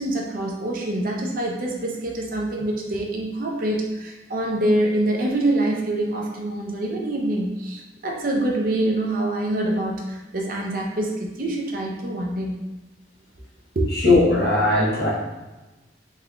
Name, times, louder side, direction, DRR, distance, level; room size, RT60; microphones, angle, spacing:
voice 1, 0.0-12.5 13.7-13.9, right 1 dB, 50° right, 0 dB, 0.5 m, -25 dB
voice 2, 14.0-15.1, left 2 dB, 60° left, -5 dB, 0.9 m, -18 dB
3.7 x 3.1 x 2.3 m, 1.1 s
head